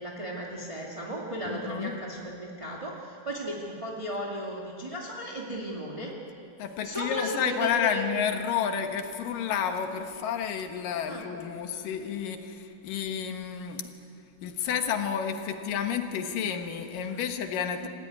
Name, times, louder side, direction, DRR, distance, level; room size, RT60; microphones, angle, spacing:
voice 1, 0.0-6.1 6.8-8.1 11.1-11.3 17.0-17.2 17.8-17.9, right 1 dB, 15° right, -3 dB, 1.4 m, -35 dB
voice 2, 1.5-1.9 6.6-13.9 14.4-17.9, left 8 dB, 70° left, 6 dB, 2.9 m, -30 dB
27.0 x 15.5 x 9.7 m, 2.6 s
omnidirectional pair, 4.2 m